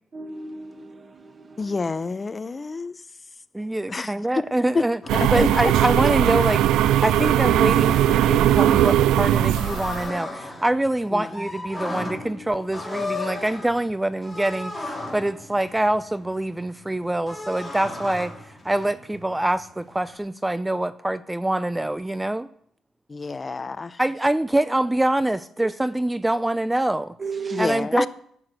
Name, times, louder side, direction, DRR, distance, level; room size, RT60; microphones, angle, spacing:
voice 1, 0.1-1.6 25.6-25.7 27.2-27.7, right 5 dB, 35° right, 1.6 m, -34 dB
voice 2, 1.6-3.0 3.9-4.5 4.7-4.9 5.1-5.7 11.1-11.3 23.1-24.0 27.5-28.1, left 4 dB, 30° left, 0.7 m, -28 dB
voice 3, 3.5-5.0 5.3-22.5 24.0-27.1 27.6-28.1, right 1 dB, 10° right, 0.4 m, -25 dB
sound 1, 5.0-20.2, left 2 dB, 10° left, 3.5 m, -37 dB
sound 2, 5.1-10.1, right 12 dB, 85° right, 0.4 m, -19 dB
11.0 x 7.9 x 7.7 m
cardioid pair, 90°, 0 cm